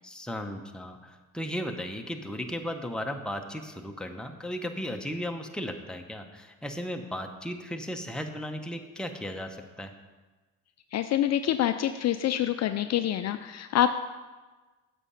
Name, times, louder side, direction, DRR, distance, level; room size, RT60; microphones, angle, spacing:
voice 1, 0.0-9.9, equal, ahead, 4 dB, 0.9 m, -36 dB
voice 2, 10.9-13.9, left 11 dB, 45° left, 9 dB, 0.5 m, -26 dB
8.1 x 6.1 x 5.7 m, 1.3 s
supercardioid pair, 80°, 36 cm